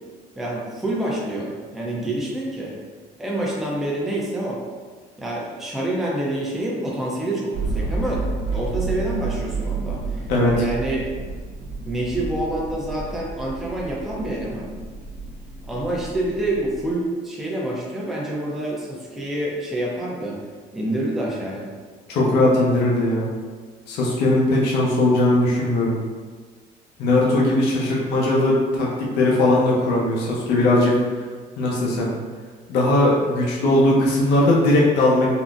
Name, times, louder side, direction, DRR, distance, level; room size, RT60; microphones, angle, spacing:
voice 1, 0.4-2.7 3.2-4.6 5.2-8.2 8.5-10.2 10.6-11.1 11.8-14.7 15.6-20.4 20.7-21.7, right 1 dB, ahead, -4 dB, 0.5 m, -27 dB
sound 1, 7.5-16.9, right 3 dB, 80° right, 0.9 m, -30 dB
voice 2, 10.3-10.6 22.1-23.3 23.9-26.0 27.0-31.0 31.6-32.1 32.7-35.3, left 1 dB, 85° left, -4 dB, 0.7 m, -19 dB
3.7 x 2.1 x 2.4 m, 1.5 s
cardioid pair, 110°, 17 cm